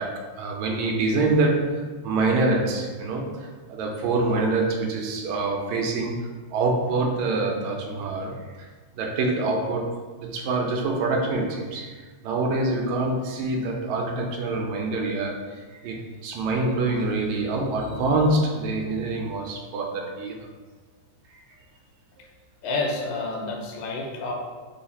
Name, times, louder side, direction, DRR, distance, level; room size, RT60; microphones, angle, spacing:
voice 1, 0.0-8.7 8.9-20.5, right 2 dB, 80° right, 1 dB, 1.8 m, -26 dB
voice 2, 22.6-24.3, left 3 dB, 80° left, 1 dB, 2.0 m, -29 dB
4.8 x 2.4 x 4.0 m, 1.4 s
omnidirectional pair, 3.4 m